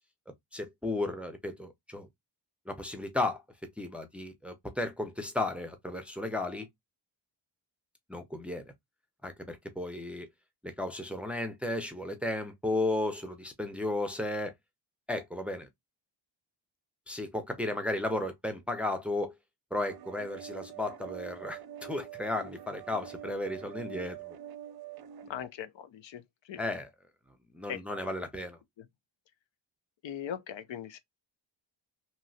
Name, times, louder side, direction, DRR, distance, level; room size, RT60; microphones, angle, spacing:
voice 1, 0.5-2.1 2.7-3.4 3.8-6.7 8.1-8.6 9.2-10.3 10.6-14.5 15.1-15.7 17.1-19.3 19.7-24.4 26.6-26.9 27.5-28.6, left 2 dB, 5° right, 0.5 m, -34 dB
sound 1, 19.8-25.3, right 11 dB, 55° right, 0.5 m, -45 dB
voice 2, 25.2-26.6 27.7-28.0 28.8-28.9 30.0-31.0, left 9 dB, 70° left, 0.6 m, -40 dB
3.0 x 2.7 x 2.6 m
wide cardioid pair, 120°, 46 cm